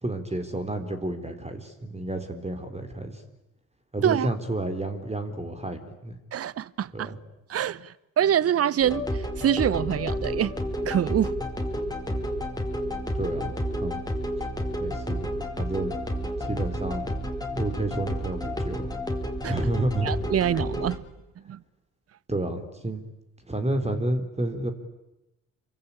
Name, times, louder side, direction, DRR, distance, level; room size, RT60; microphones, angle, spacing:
voice 1, 0.0-3.2 3.9-6.2 6.9-7.2 13.1-14.0 14.8-15.3 15.6-15.9 16.4-17.1 17.5-18.9 19.5-20.1 22.3-23.0 23.4-24.7, right 1 dB, 15° right, 3.9 m, -30 dB
voice 2, 6.3-7.1 7.5-10.5 10.8-11.3 19.4-19.5 20.0-21.0 21.5-21.6, right 10 dB, 35° right, 0.9 m, -25 dB
sound 1, 8.8-21.0, equal, 10° left, 4.7 m, -30 dB
28.0 x 24.0 x 8.8 m
figure-of-eight pair, 45°, 43 cm